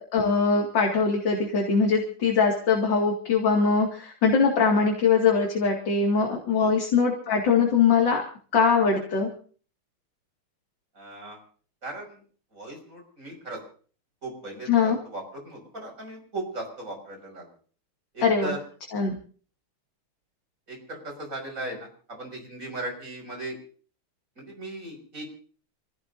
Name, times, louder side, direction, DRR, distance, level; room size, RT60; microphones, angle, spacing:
voice 1, 0.1-8.2 8.5-9.3 14.7-15.0 18.2-18.5 18.9-19.1, left 5 dB, 55° left, 0 dB, 2.9 m, -22 dB
voice 2, 11.0-11.4 11.8-12.2 12.5-13.6 14.2-17.5 18.1-18.6 20.7-23.6 24.4-25.2, right 2 dB, 35° right, 2 dB, 6.2 m, -37 dB
28.0 x 16.5 x 2.7 m, 0.43 s
omnidirectional pair, 2.4 m